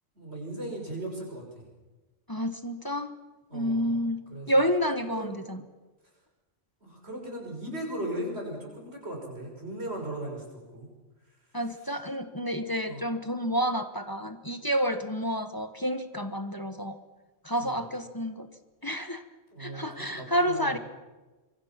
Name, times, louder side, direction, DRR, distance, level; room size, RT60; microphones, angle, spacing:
voice 1, 0.1-1.6 3.5-4.0 4.3-4.6 5.1-5.4 6.8-10.9 12.6-13.0 13.4-13.5 17.6-17.8 19.5-20.8, right 1 dB, 60° right, 0 dB, 6.5 m, -38 dB
voice 2, 2.3-3.1 3.5-4.2 4.5-5.6 11.5-17.0 17.4-18.5 18.8-19.2 19.6-20.8, equal, 20° left, 8 dB, 1.3 m, -29 dB
25.5 x 23.0 x 5.9 m, 1.2 s
omnidirectional pair, 1.2 m